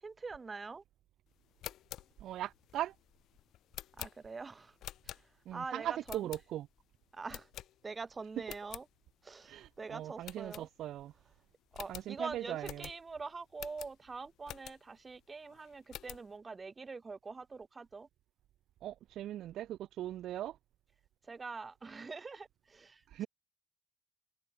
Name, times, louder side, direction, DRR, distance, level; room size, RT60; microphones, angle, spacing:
voice 1, 0.0-0.8 4.0-4.7 5.1-5.2 5.5-6.3 7.1-7.5 7.8-8.8 9.2-10.7 11.7-18.1 21.3-23.3, right 4 dB, 30° right, 1.9 m, -44 dB
sound 1, 1.4-5.6 6.0-6.8 7.3-8.1 8.4-8.9 9.3-9.4 9.7-9.8 10.2-11.1 11.4-11.5 11.7-15.0 15.5-16.3, left 13 dB, 80° left, 2.1 m, -48 dB
voice 2, 2.2-2.9 5.5-6.7 9.4-11.1 11.9-12.9 18.8-20.6 23.1-23.3, right 12 dB, 80° right, 0.8 m, -39 dB
cardioid pair, 90°, 0 cm